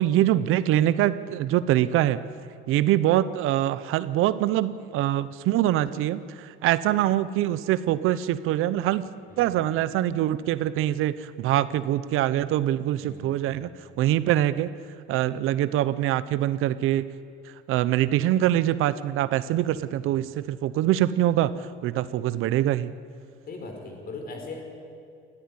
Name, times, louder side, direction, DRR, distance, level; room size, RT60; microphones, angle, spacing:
voice 1, 0.0-2.2 2.7-9.0 9.4-13.7 14.0-14.7 15.1-17.1 17.7-21.5 21.8-22.9, right 13 dB, 80° right, 15 dB, 0.8 m, -24 dB
voice 2, 9.3-9.7 13.0-13.7 19.6-20.2 23.5-24.6, left 3 dB, 45° left, 3 dB, 4.7 m, -41 dB
19.0 x 14.5 x 9.9 m, 2.4 s
cardioid pair, 135°, 21 cm